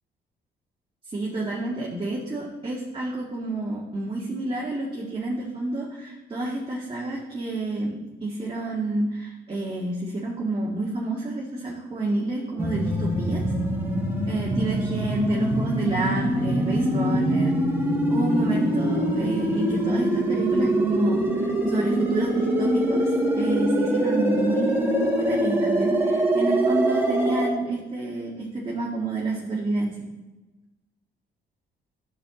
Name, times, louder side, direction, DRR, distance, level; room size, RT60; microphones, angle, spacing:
voice 1, 1.1-13.4 14.2-17.6 18.1-30.0, right 2 dB, 25° right, -5 dB, 1.6 m, -29 dB
sound 1, 12.6-27.5, right 1 dB, 10° right, 1.7 m, -24 dB
10.5 x 6.6 x 3.8 m, 1.1 s
cardioid pair, 90°, 20 cm